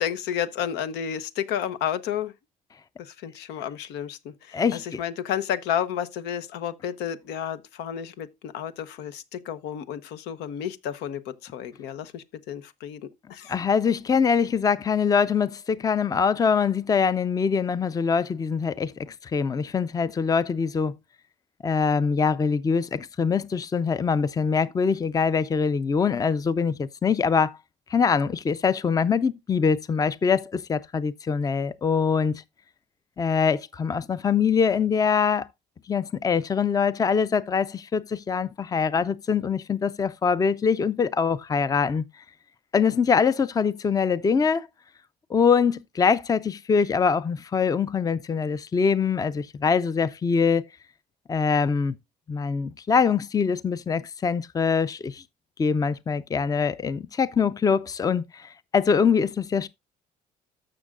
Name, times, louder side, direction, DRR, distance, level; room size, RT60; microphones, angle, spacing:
voice 1, 0.0-2.3 3.0-13.5, left 9 dB, 85° left, 0.9 m, -31 dB
voice 2, 4.5-5.0 13.5-20.9 21.6-27.6 27.9-32.4 33.2-35.5 35.9-42.0 42.7-44.7 45.3-50.6 51.3-52.0 52.3-55.2 55.6-59.7, left 6 dB, 20° left, 0.5 m, -23 dB
14.0 x 6.2 x 2.4 m
cardioid pair, 110°, 17 cm